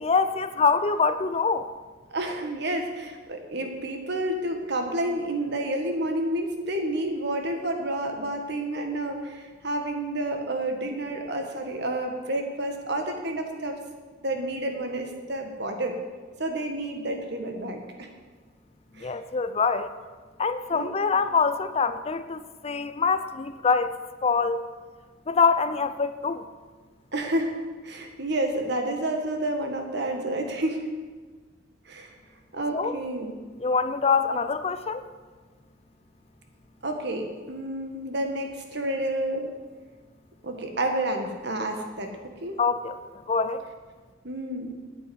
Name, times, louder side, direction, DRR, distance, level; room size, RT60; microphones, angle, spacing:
voice 1, 0.0-1.7 19.0-19.9 20.4-24.0 24.2-24.7 25.3-26.4 32.7-33.0 33.6-35.0 42.6-43.6, left 5 dB, 30° left, 12 dB, 0.5 m, -25 dB
voice 2, 2.1-13.8 14.2-16.0 16.4-18.1 19.0-19.1 20.7-20.9 27.1-27.5 27.8-30.9 31.8-32.1 32.5-33.4 36.8-39.5 40.4-42.6 44.2-44.7, right 1 dB, 60° right, 4 dB, 1.7 m, -30 dB
9.7 x 8.6 x 8.1 m, 1.4 s
head